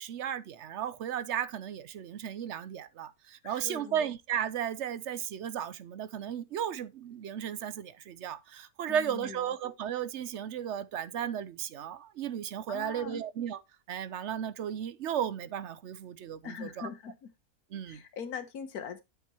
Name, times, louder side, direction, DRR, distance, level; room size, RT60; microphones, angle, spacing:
voice 1, 0.0-13.6 13.9-16.9 17.7-18.0, right 9 dB, 60° right, 0.8 m, -35 dB
voice 2, 3.4-4.1 8.8-9.5 12.7-13.2 16.4-17.3 17.9-19.0, left 7 dB, 80° left, 1.6 m, -42 dB
8.4 x 7.4 x 3.0 m
omnidirectional pair, 1.6 m